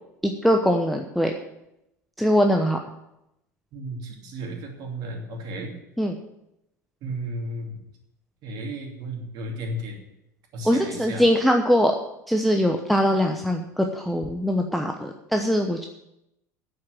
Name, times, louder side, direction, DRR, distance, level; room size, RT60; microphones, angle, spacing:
voice 1, 0.2-1.3 2.2-2.8 6.0-6.1 10.6-12.0 12.3-15.9, equal, ahead, 3 dB, 1.0 m, -22 dB
voice 2, 3.7-5.8 7.0-7.8 8.4-10.0 10.5-11.2, right 1 dB, 45° right, 2 dB, 2.8 m, -34 dB
9.6 x 7.8 x 8.7 m, 0.85 s
figure-of-eight pair, 70°, 9 cm